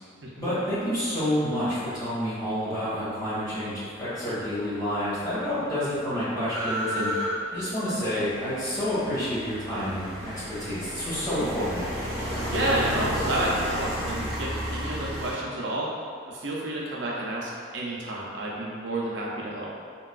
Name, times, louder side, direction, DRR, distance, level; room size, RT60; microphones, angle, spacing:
voice 1, 0.4-7.1 7.5-11.9, equal, 20° left, -12 dB, 1.4 m, -29 dB
sound 1, 4.7-4.8 4.9-15.3, equal, ahead, 1.0 m, -32 dB
voice 2, 12.5-15.9 16.2-19.7, right 1 dB, 70° right, -4 dB, 0.5 m, -30 dB
3.8 x 2.2 x 2.3 m, 2.1 s
head